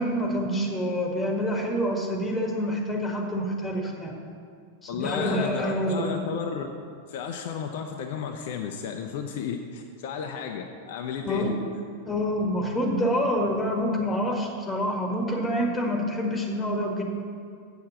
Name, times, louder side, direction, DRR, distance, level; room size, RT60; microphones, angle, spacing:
voice 1, 0.0-4.2 4.8-6.2 11.2-11.6 12.1-17.0, equal, 10° left, 2 dB, 1.6 m, -27 dB
voice 2, 4.9-6.7 7.1-11.6, left 7 dB, 50° left, 4 dB, 0.6 m, -33 dB
8.1 x 6.6 x 7.2 m, 2.2 s
figure-of-eight pair, 90°, 0 cm